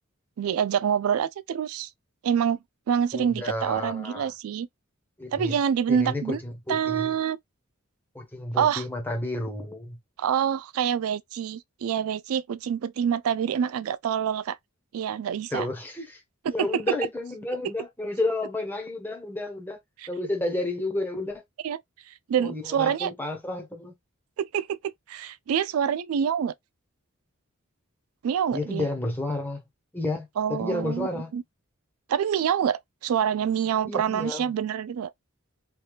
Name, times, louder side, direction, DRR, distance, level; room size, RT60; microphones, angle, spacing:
voice 1, 0.4-1.9 2.2-2.6 2.9-4.7 5.3-6.4 6.7-7.4 8.5-8.8 10.2-14.6 14.9-15.7 16.4-16.8 20.0-20.1 21.6-21.8 22.1-23.1 24.4-26.5 28.2-28.9 30.4-31.4 32.1-35.1, right 8 dB, 85° right, 0.3 m, -26 dB
voice 2, 3.1-4.3 5.2-5.6 5.9-7.1 8.1-10.0 15.5-16.2 16.5-19.8 20.1-21.4 22.4-23.9 28.5-29.6 29.9-31.3 33.8-34.5, left 2 dB, 10° left, 1.1 m, -31 dB
3.3 x 2.8 x 2.3 m
head